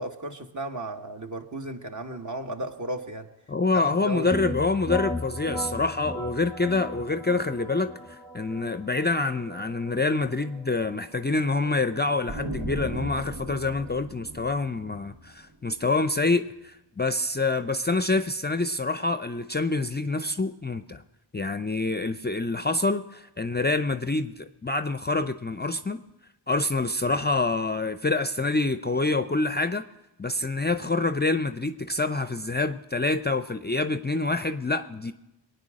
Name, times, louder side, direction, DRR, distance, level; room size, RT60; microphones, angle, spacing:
voice 1, 0.0-3.3 4.0-4.4, right 1 dB, 40° right, 4 dB, 1.4 m, -34 dB
voice 2, 3.5-21.0 21.3-26.0 26.5-29.9 30.2-35.1, left 3 dB, 25° left, 10 dB, 0.5 m, -26 dB
sound 1, 4.3-13.9, left 1 dB, ahead, 0.9 m, -38 dB
sound 2, 12.3-15.9, right 1 dB, 85° right, 1.5 m, -37 dB
22.0 x 9.2 x 6.3 m, 0.96 s
wide cardioid pair, 65°, 44 cm